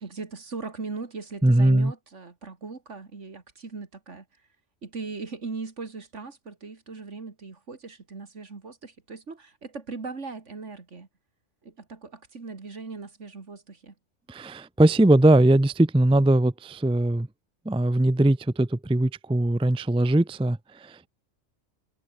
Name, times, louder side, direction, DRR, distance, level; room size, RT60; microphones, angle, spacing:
voice 1, 0.0-4.2 4.8-11.1 11.6-13.9, right 4 dB, 70° right, 2.7 m, -39 dB
voice 2, 1.4-1.9 14.3-17.3 17.7-21.1, right 1 dB, 5° right, 0.5 m, -21 dB
omnidirectional pair, 1.3 m